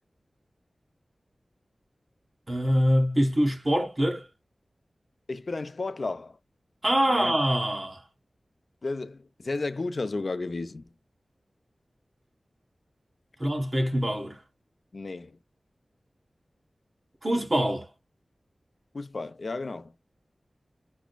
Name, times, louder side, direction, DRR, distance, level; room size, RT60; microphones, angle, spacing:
voice 1, 2.5-4.3 6.8-8.0 13.4-14.4 17.2-17.9, equal, 35° right, 1.3 m, -24 dB
voice 2, 5.3-6.4 7.0-7.3 8.8-10.9 14.9-15.4 18.9-19.9, left 3 dB, 55° left, 0.5 m, -33 dB
6.1 x 2.1 x 2.2 m
wide cardioid pair, 90°, 0 cm